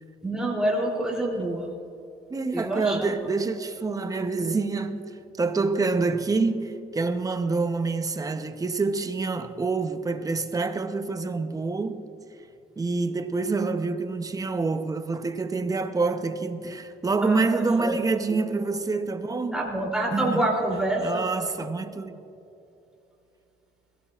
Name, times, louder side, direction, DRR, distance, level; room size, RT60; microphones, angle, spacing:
voice 1, 0.2-1.7 2.5-3.1 17.2-18.0 18.3-18.4 19.5-21.3, right 1 dB, 5° right, 3.1 m, -27 dB
voice 2, 2.3-12.1 12.8-19.6 20.1-20.4 21.0-22.2, right 3 dB, 20° right, 0.8 m, -27 dB
21.0 x 16.5 x 2.5 m
cardioid pair, 110°, 17 cm